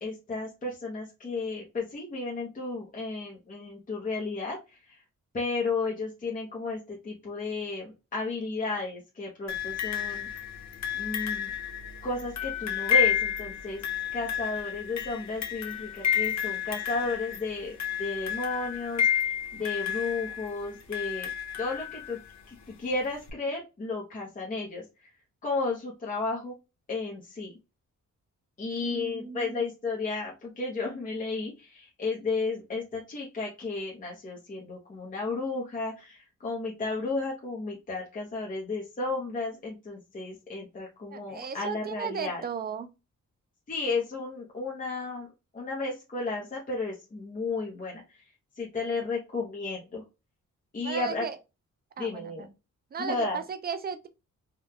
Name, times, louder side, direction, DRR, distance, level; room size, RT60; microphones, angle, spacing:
voice 1, 0.0-4.6 5.3-10.3 10.9-11.5 12.0-13.8 14.1-21.3 21.6-22.2 22.5-24.8 25.4-26.5 26.9-27.5 28.6-42.4 43.7-45.3 45.5-48.0 48.6-50.0 50.7-51.2 52.0-52.5 53.0-53.4, left 3 dB, 25° left, 0.8 m, -33 dB
sound 1, 9.5-22.3 23.3-23.4, left 9 dB, 60° left, 0.7 m, -31 dB
voice 2, 28.8-29.6 41.1-42.9 50.8-51.4 52.0-52.5 52.9-54.1, right 6 dB, 30° right, 0.4 m, -36 dB
3.6 x 2.3 x 2.8 m
wide cardioid pair, 170°, 31 cm